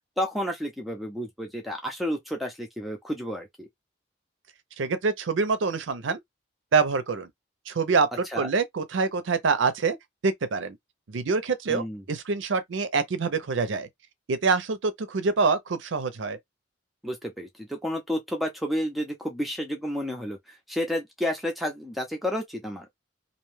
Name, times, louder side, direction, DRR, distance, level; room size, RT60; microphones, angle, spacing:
voice 1, 0.2-3.7 8.3-8.5 11.7-12.0 17.0-22.9, equal, ahead, 0.5 m, -31 dB
voice 2, 4.8-6.2 6.7-7.3 7.7-10.0 10.2-10.8 11.1-13.9 14.3-16.4, right 4 dB, 80° right, 0.5 m, -25 dB
2.6 x 2.2 x 3.1 m
head